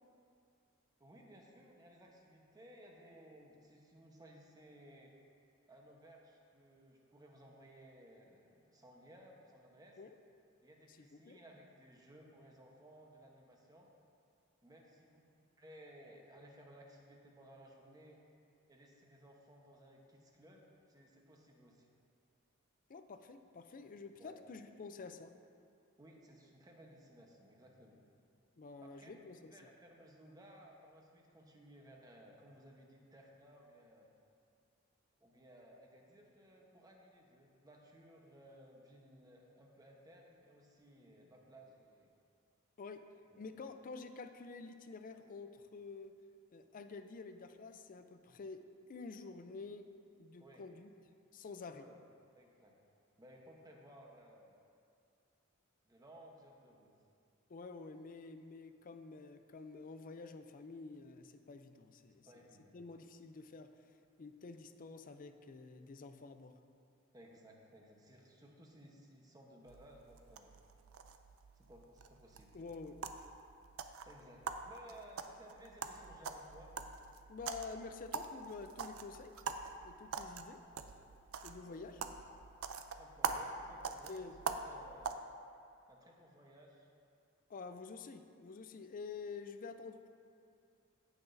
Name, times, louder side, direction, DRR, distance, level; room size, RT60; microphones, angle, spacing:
voice 1, 1.0-5.1 5.7-10.0 10.6-13.9 14.6-18.2 18.7-21.9 24.2-24.4 26.0-28.0 28.8-34.1 35.2-42.1 43.3-43.4 50.4-50.6 51.7-52.0 52.3-52.8 53.2-54.6 55.8-56.9 62.1-62.7 67.1-70.5 71.5-72.6 74.1-76.7 81.6-82.1 82.9-85.2 85.9-86.9, equal, 20° right, -1 dB, 1.0 m, -59 dB
voice 2, 10.9-11.4 22.9-25.3 28.6-29.5 42.8-43.0 43.4-46.2 46.5-48.6 48.9-49.9 50.2-50.9 51.3-51.8 57.5-62.3 62.7-63.7 64.2-66.5 72.5-73.0 77.3-79.4 79.8-80.6 81.4-82.0 84.1-84.3 87.5-90.1, left 4 dB, 40° left, 8 dB, 0.4 m, -49 dB
sound 1, 69.7-85.2, right 5 dB, 75° right, 0.5 m, -44 dB
16.0 x 5.9 x 2.6 m, 2.4 s
head